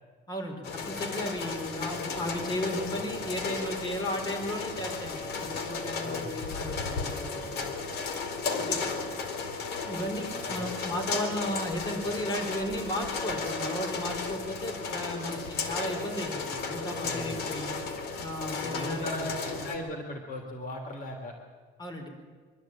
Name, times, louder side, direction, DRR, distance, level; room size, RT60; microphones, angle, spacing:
voice 1, 0.3-7.8 8.6-8.8 9.8-17.8 18.2-19.3 21.8-22.1, equal, 25° left, 3 dB, 4.3 m, -35 dB
sound 1, 0.6-19.8, left 4 dB, 75° left, 2.7 m, -34 dB
voice 2, 10.4-10.8 17.0-17.5 18.6-21.3, left 1 dB, 55° left, 3 dB, 3.1 m, -38 dB
23.5 x 12.5 x 8.9 m, 1.5 s
cardioid pair, 110°, 17 cm